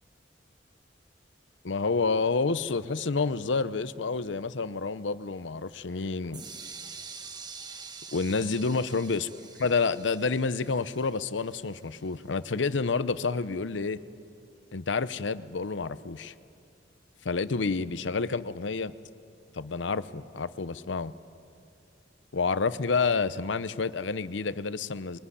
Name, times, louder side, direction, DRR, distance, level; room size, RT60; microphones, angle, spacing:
voice 1, 1.6-6.4 8.1-9.3 9.6-14.0 14.7-16.3 17.2-18.9 19.5-21.1 22.3-25.2, left 4 dB, 85° left, 15 dB, 0.7 m, -29 dB
sound 1, 6.3-12.2, right 5 dB, 25° right, 1.2 m, -46 dB
22.5 x 19.0 x 9.9 m, 2.4 s
head